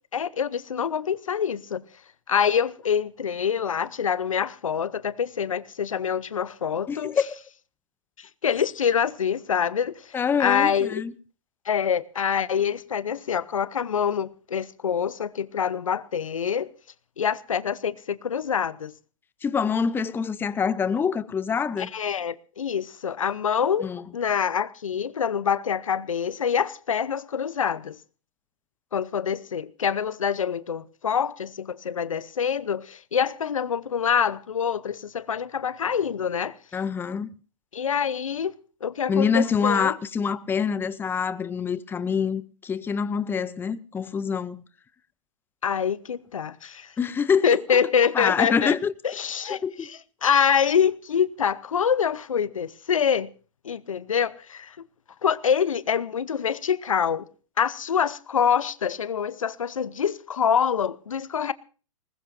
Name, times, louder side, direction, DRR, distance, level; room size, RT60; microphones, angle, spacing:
voice 1, 0.1-1.8 2.3-7.2 8.2-11.0 11.7-16.7 17.2-18.9 21.9-28.0 28.9-36.6 37.7-38.5 38.8-39.9 45.6-46.9 47.4-48.7 49.0-53.3 53.6-54.8 55.2-57.3 57.6-61.5, left 7 dB, 85° left, 0.8 m, -25 dB
voice 2, 6.9-7.2 10.1-11.1 19.4-21.9 23.8-24.0 36.7-37.3 39.1-44.6 47.0-47.8 48.1-48.9 49.5-49.9, left 6 dB, 15° left, 0.7 m, -25 dB
20.5 x 20.0 x 2.6 m
hypercardioid pair, 120°, 17 cm